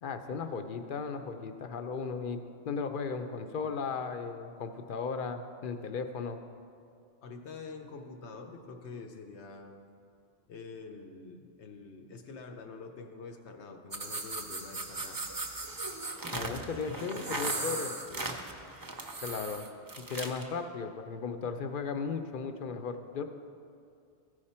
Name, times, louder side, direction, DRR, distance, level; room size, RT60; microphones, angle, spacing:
voice 1, 0.0-2.4 2.7-6.4 16.3-17.9 19.2-19.7 20.0-23.2, left 5 dB, 60° left, 7 dB, 0.7 m, -36 dB
voice 2, 7.2-9.8 10.5-15.2 16.9-18.4, left 4 dB, 90° left, 4 dB, 1.1 m, -46 dB
sound 1, 13.9-20.5, right 2 dB, 25° right, 0.5 m, -37 dB
14.5 x 5.0 x 4.3 m, 2.4 s
omnidirectional pair, 1.1 m